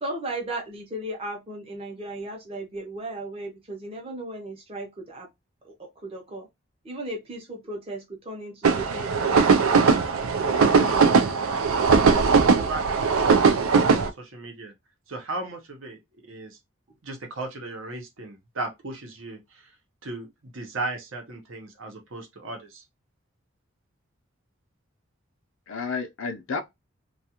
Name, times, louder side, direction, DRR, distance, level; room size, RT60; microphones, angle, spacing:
voice 1, 0.0-5.3 5.6-6.5 6.8-10.0 10.4-11.3 12.1-12.7, right 1 dB, 25° right, 0.7 m, -36 dB
sound 1, 8.6-14.1, right 5 dB, 85° right, 0.4 m, -19 dB
voice 2, 10.5-10.9 25.7-26.6, left 5 dB, 70° left, 0.5 m, -32 dB
voice 3, 12.1-14.7 15.1-16.0 16.3-16.6 17.0-19.4 20.0-22.8, right 2 dB, 70° right, 0.8 m, -36 dB
2.3 x 2.3 x 2.8 m
head